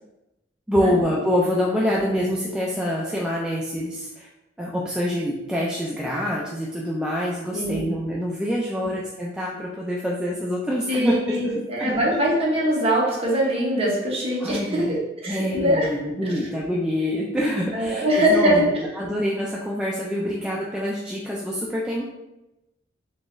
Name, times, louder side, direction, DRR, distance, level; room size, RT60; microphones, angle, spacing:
voice 1, 0.7-4.3 4.6-12.2 14.4-15.0 15.3-22.1, equal, 5° right, -4 dB, 0.3 m, -26 dB
voice 2, 7.5-7.9 8.8-8.9 10.9-15.9 16.2-16.3 17.7-18.7, equal, 35° right, -5 dB, 1.0 m, -22 dB
3.8 x 2.9 x 2.5 m, 0.95 s
head